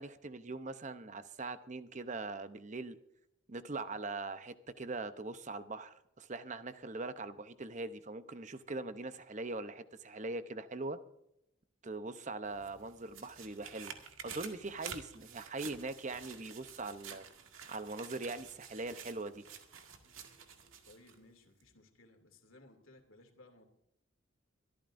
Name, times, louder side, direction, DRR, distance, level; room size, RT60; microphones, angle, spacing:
voice 1, 0.0-3.0 3.5-11.0 11.8-13.9 14.2-17.2 17.7-19.4, right 3 dB, 35° right, 11 dB, 0.8 m, -41 dB
sound 1, 12.4-21.2 21.6-21.7, right 7 dB, 85° right, 1.9 m, -50 dB
voice 2, 20.8-23.7, left 2 dB, 85° left, 5 dB, 2.6 m, -60 dB
23.0 x 14.0 x 2.6 m, 0.79 s
head